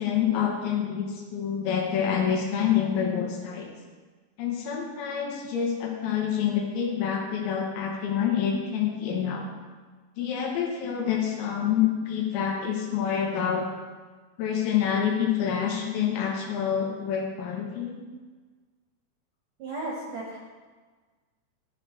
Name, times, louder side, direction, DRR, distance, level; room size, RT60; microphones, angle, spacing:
voice 1, 0.0-3.7 4.4-9.4 10.2-13.7 14.4-18.0, left 8 dB, 90° left, -1 dB, 3.5 m, -27 dB
voice 2, 19.6-20.4, right 2 dB, 75° right, -3 dB, 2.0 m, -34 dB
13.0 x 6.5 x 3.1 m, 1.4 s
omnidirectional pair, 5.2 m